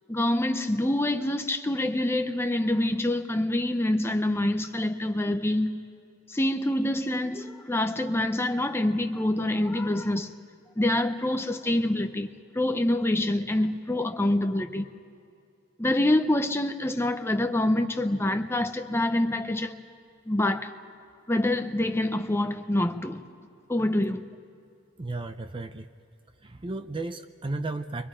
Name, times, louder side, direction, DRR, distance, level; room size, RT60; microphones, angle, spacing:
voice 1, 0.1-5.8 6.3-10.3 10.8-12.3 12.5-14.9 15.8-19.8 20.3-20.7 21.3-23.2 23.7-24.2, left 1 dB, 10° left, 0.8 m, -26 dB
voice 2, 25.0-25.9 26.4-28.1, right 2 dB, 25° right, 0.5 m, -34 dB
29.5 x 24.0 x 5.0 m
head